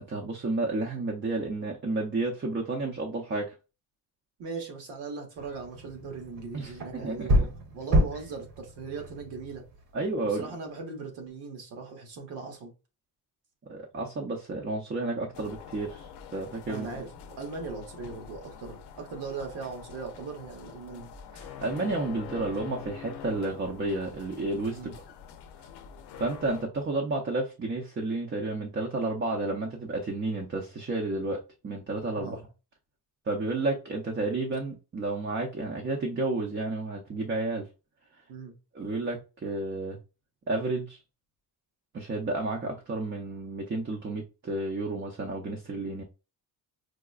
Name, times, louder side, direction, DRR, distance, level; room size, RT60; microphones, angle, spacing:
voice 1, 0.1-3.5 6.5-7.5 9.9-10.5 13.7-16.9 21.3-24.8 26.2-32.4 33.3-37.7 38.7-40.0 40.5-41.0 41.9-46.0, right 2 dB, 30° right, 0.6 m, -31 dB
voice 2, 4.4-9.7 10.2-12.7 16.7-17.1 17.4-21.1 24.7-25.0 32.2-32.5 38.3-38.5, right 4 dB, 90° right, 1.1 m, -39 dB
sound 1, 5.4-10.2, equal, 55° right, 1.1 m, -29 dB
sound 2, 15.3-26.7, left 8 dB, 75° left, 0.6 m, -45 dB
4.8 x 2.1 x 2.4 m
cardioid pair, 90°, 40 cm